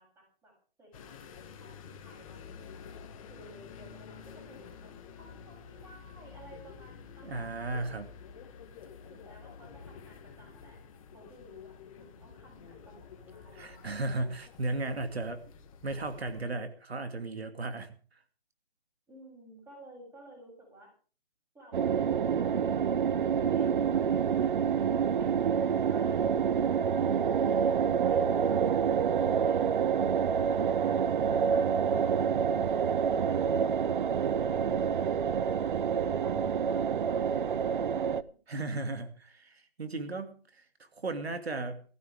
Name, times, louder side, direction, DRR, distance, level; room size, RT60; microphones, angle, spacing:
voice 1, 0.0-2.8 3.3-7.9 9.1-10.8 11.1-13.9 19.1-20.9 21.5-26.8 36.2-36.9, right 1 dB, 10° right, -1 dB, 8.0 m, -55 dB
sound 1, 0.9-16.4, left 6 dB, 35° left, 1.9 m, -50 dB
voice 2, 7.2-8.1 13.5-15.4 15.8-18.2 38.5-41.8, right 2 dB, 85° right, 8 dB, 2.6 m, -35 dB
sound 2, 21.7-38.2, right 7 dB, 55° right, 0.9 m, -27 dB
19.5 x 15.5 x 3.6 m, 0.39 s
hypercardioid pair, 155°, 31 cm